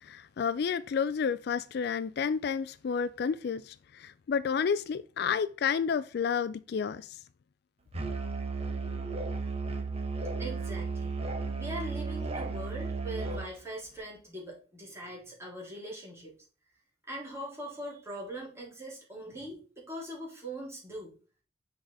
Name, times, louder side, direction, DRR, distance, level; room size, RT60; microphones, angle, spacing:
voice 1, 0.0-7.2, left 6 dB, 60° left, 0.4 m, -31 dB
Musical instrument, 7.9-13.5, right 4 dB, 35° right, 1.1 m, -34 dB
voice 2, 10.4-11.2 11.5-16.4 17.1-21.1, right 1 dB, 15° right, 3.7 m, -41 dB
6.3 x 4.8 x 3.9 m
head